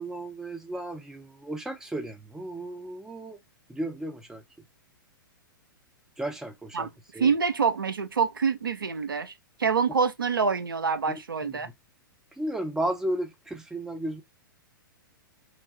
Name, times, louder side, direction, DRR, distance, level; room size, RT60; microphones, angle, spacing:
voice 1, 0.0-3.4 3.7-4.4 6.2-7.4 11.1-11.7 12.4-14.2, right 1 dB, 5° right, 0.6 m, -34 dB
voice 2, 7.2-9.3 9.6-11.7, right 5 dB, 75° right, 0.5 m, -26 dB
3.1 x 2.2 x 4.1 m
figure-of-eight pair, 105°, 11 cm